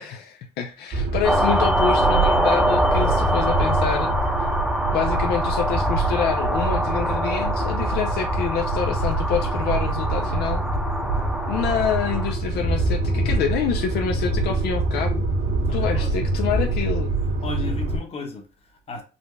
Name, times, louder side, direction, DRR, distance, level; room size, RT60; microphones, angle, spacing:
voice 1, 0.0-4.1 4.9-10.6 11.5-15.2 15.7-17.1, left 8 dB, 75° left, 0.5 m, -27 dB
sound 1, 0.9-18.0, right 2 dB, 65° right, 1.7 m, -25 dB
sound 2, 1.2-12.3, equal, ahead, 0.7 m, -25 dB
voice 2, 15.6-16.1 16.7-16.8 17.4-19.0, left 3 dB, 35° left, 1.0 m, -34 dB
4.1 x 2.3 x 3.1 m
cardioid pair, 110°, 17 cm